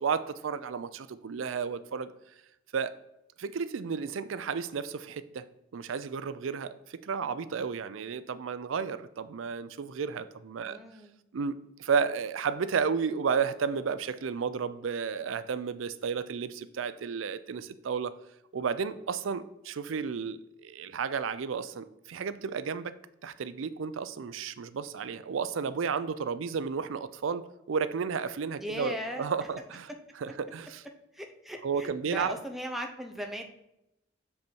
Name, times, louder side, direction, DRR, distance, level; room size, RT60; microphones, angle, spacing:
voice 1, 0.0-2.1 2.7-3.0 3.4-5.4 5.7-10.8 11.3-18.1 18.5-22.9 23.2-27.4 27.7-29.9 30.2-30.8 31.6-32.3, right 6 dB, 80° right, 13 dB, 0.4 m, -32 dB
voice 2, 10.6-11.1 28.6-29.3 31.1-33.4, equal, ahead, 3 dB, 0.8 m, -38 dB
6.9 x 5.3 x 4.5 m, 0.87 s
head